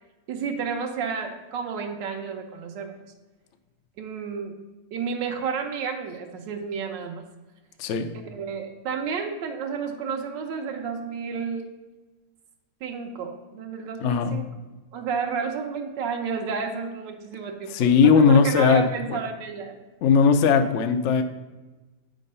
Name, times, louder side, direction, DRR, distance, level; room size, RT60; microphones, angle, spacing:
voice 1, 0.3-2.9 4.0-4.5 4.9-7.2 8.3-11.7 12.8-14.4 14.9-19.7, right 6 dB, 90° right, 2 dB, 1.4 m, -31 dB
voice 2, 7.8-8.1 14.0-14.3 17.7-18.8 19.1-19.2 20.0-21.2, left 5 dB, 70° left, 7 dB, 0.7 m, -18 dB
8.3 x 3.9 x 5.4 m, 1.2 s
omnidirectional pair, 1.9 m